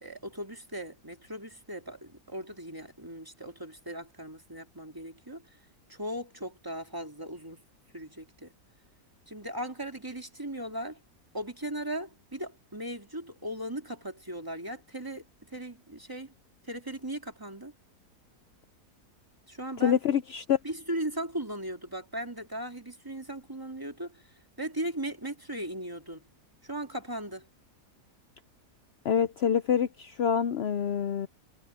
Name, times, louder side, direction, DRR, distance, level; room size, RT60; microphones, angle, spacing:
voice 1, 0.0-5.5 5.9-7.6 7.9-8.5 9.3-11.0 11.3-16.3 16.6-17.7 19.5-20.0 20.6-24.3 24.6-26.3 26.6-27.5, right 1 dB, 10° right, 2.3 m, -38 dB
voice 2, 19.8-20.6 29.0-31.3, left 8 dB, 70° left, 0.6 m, -26 dB
omnidirectional pair, 1.8 m